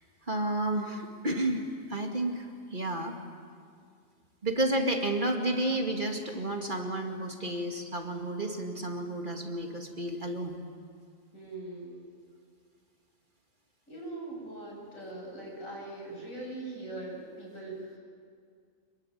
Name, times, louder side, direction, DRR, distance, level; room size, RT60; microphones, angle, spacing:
voice 1, 0.3-2.5 2.7-3.1 4.4-10.6, right 1 dB, 35° right, 3 dB, 2.5 m, -31 dB
voice 2, 11.3-12.0 13.9-18.0, right 2 dB, 85° left, -2 dB, 8.6 m, -41 dB
27.0 x 22.5 x 9.4 m, 2.1 s
omnidirectional pair, 1.4 m